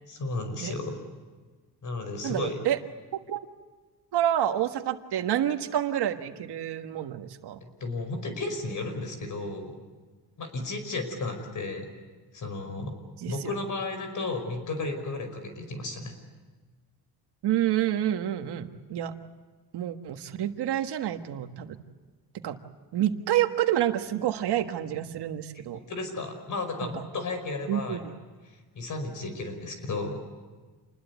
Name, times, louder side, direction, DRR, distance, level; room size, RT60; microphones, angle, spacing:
voice 1, 0.1-1.0 1.8-2.6 7.6-9.8 10.4-11.9 12.3-13.0 13.3-16.1 25.7-28.0 28.5-30.2, left 3 dB, 50° left, 7 dB, 5.2 m, -33 dB
voice 2, 2.2-2.8 3.3-3.4 4.1-7.6 13.2-13.5 17.4-19.1 19.7-21.8 22.4-22.6 22.9-25.8 26.8-26.9 27.7-28.1, right 11 dB, 85° right, 7 dB, 1.6 m, -28 dB
28.0 x 20.5 x 8.3 m, 1.4 s
cardioid pair, 140°, 39 cm